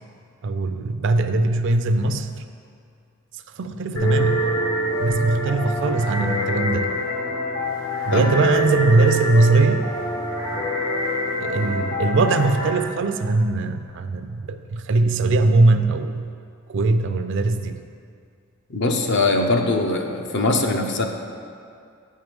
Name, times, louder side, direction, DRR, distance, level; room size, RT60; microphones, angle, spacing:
voice 1, 0.4-2.5 3.6-4.6 5.0-6.9 8.1-9.9 11.4-16.3 16.7-17.8, right 3 dB, 60° right, 9 dB, 0.4 m, -20 dB
sound 1, 4.0-12.7, equal, 75° left, 1.8 m, -25 dB
voice 2, 18.7-21.1, left 2 dB, 55° left, 4 dB, 0.7 m, -21 dB
8.5 x 4.6 x 5.2 m, 2.4 s
head